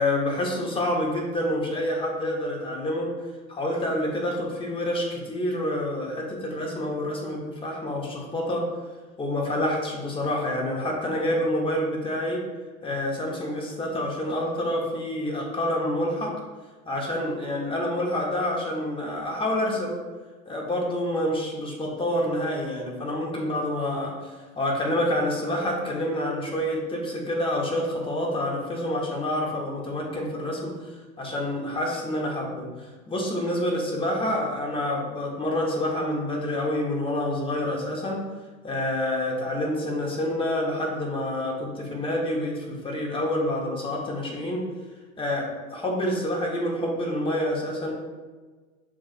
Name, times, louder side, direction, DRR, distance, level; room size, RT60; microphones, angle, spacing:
voice 1, 0.0-3.1 3.5-8.6 9.2-12.4 12.8-16.3 16.8-19.9 20.5-38.2 38.6-44.6 45.2-45.4 45.7-47.9, left 1 dB, 10° left, -2 dB, 1.0 m, -27 dB
7.1 x 2.6 x 2.5 m, 1.3 s
hypercardioid pair, 105°, 44 cm